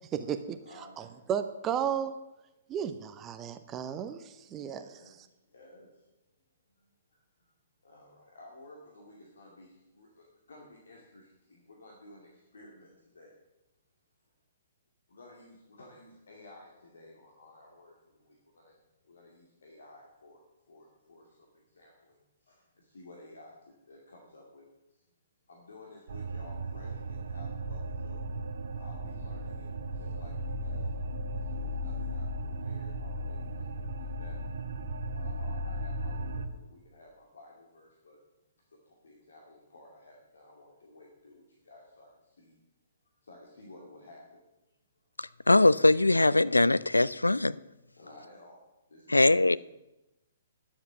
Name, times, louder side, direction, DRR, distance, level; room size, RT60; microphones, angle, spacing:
voice 1, 0.1-0.6 1.0-2.1 2.7-4.8, right 8 dB, 20° right, 0.7 m, -33 dB
voice 2, 0.6-1.1 4.3-5.2 5.5-6.1 6.8-7.5 7.8-13.3 15.1-18.8 19.0-20.4 20.7-25.0 25.5-28.2 28.8-34.4 35.1-38.2 38.7-42.6 43.2-44.4 48.0-48.6 48.9-49.6, left 2 dB, 70° left, 2.3 m, -54 dB
sound 1, 26.1-36.5, equal, 60° right, 1.0 m, -36 dB
voice 3, 45.2-47.5 49.1-49.6, left 2 dB, 85° left, 0.3 m, -22 dB
11.0 x 7.4 x 7.3 m
figure-of-eight pair, 120°, 0 cm